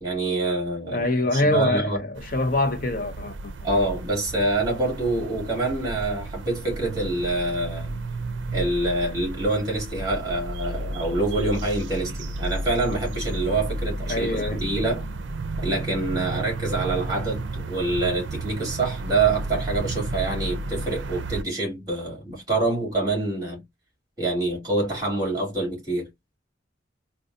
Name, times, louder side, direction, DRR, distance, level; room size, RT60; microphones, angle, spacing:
voice 1, 0.0-1.0 1.3-2.0 3.6-7.9 8.5-15.1 15.6-23.6 24.2-26.1, right 2 dB, 20° right, 2.3 m, -26 dB
voice 2, 0.9-3.5 14.1-14.7, left 2 dB, 45° left, 0.7 m, -24 dB
sound 1, 2.2-21.4, right 2 dB, 75° right, 0.5 m, -33 dB
3.8 x 2.3 x 2.5 m
head